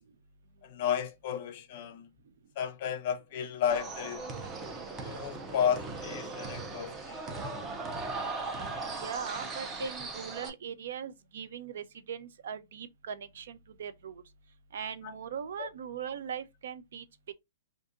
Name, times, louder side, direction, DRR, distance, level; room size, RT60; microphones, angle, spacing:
voice 1, 0.6-2.1 2.6-4.4 5.0-7.2 9.8-9.9 15.0-15.2 15.6-15.7, left 8 dB, 40° left, 0.5 m, -33 dB
sound 1, 3.7-10.5, right 3 dB, 15° right, 0.5 m, -38 dB
voice 2, 9.0-14.2 14.7-17.3, right 8 dB, 65° right, 0.5 m, -40 dB
2.6 x 2.5 x 3.6 m
hypercardioid pair, 175°, 0 cm